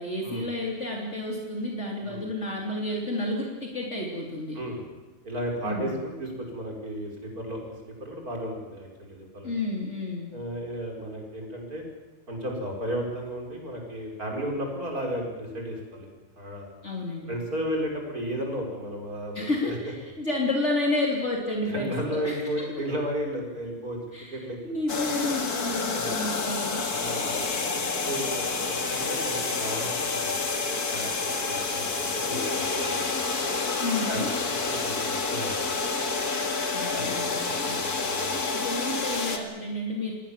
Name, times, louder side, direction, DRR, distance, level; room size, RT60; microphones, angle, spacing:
voice 1, 0.0-4.6 5.6-6.0 9.4-10.3 16.8-17.3 19.3-22.7 24.1-26.9 33.8-34.3 36.7-37.8 38.5-40.1, left 2 dB, 50° left, -1 dB, 3.5 m, -31 dB
voice 2, 5.2-9.5 10.3-11.8 12.3-16.1 16.4-16.7 17.3-19.7 21.7-24.0 24.3-24.8 25.9-26.1 26.9-27.4 28.0-33.1 34.1-34.2 34.7-35.9 36.9-38.4, equal, 75° right, 0 dB, 6.0 m, -34 dB
sound 1, 24.9-39.4, left 4 dB, 85° left, 2.6 m, -29 dB
28.0 x 20.0 x 7.5 m, 1.2 s
omnidirectional pair, 1.6 m